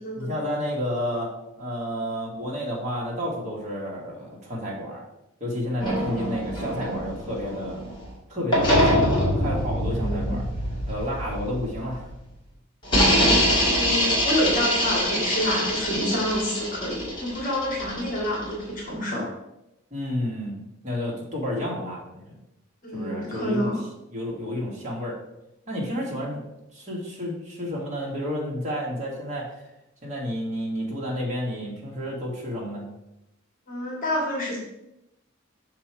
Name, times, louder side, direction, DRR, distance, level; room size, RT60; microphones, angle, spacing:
voice 1, 0.1-1.3 1.6-5.0 5.4-7.8 8.3-9.1 9.4-10.4 10.9-12.1 19.9-20.6 20.8-22.4 22.9-23.7 24.1-25.2 25.7-26.4 26.7-29.5 30.0-32.8, equal, 35° right, -3 dB, 1.7 m, -31 dB
sound 1, 5.8-8.1 8.5-12.1 12.8-18.6, equal, 25° left, 2.1 m, -24 dB
voice 2, 9.9-10.4 13.7-19.3 22.8-23.8 33.7-34.6, equal, 40° left, -3 dB, 2.0 m, -28 dB
6.0 x 4.6 x 4.5 m, 0.88 s
head